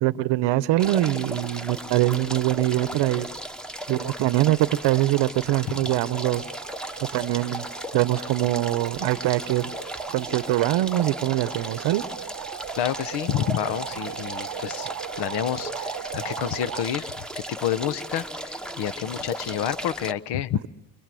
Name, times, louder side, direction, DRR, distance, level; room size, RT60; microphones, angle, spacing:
voice 1, 0.0-3.3 3.9-6.4 7.0-7.6 7.9-9.7 10.1-12.0, right 16 dB, 75° right, 17 dB, 0.9 m, -23 dB
sound 1, 0.8-20.1, right 1 dB, ahead, 1.1 m, -36 dB
sound 2, 5.7-16.8, right 10 dB, 45° right, 0.9 m, -38 dB
voice 2, 12.8-14.9 15.2-17.1 17.5-20.7, left 10 dB, 65° left, 16 dB, 1.0 m, -29 dB
29.5 x 25.5 x 7.7 m, 1.0 s
supercardioid pair, 80°, 43 cm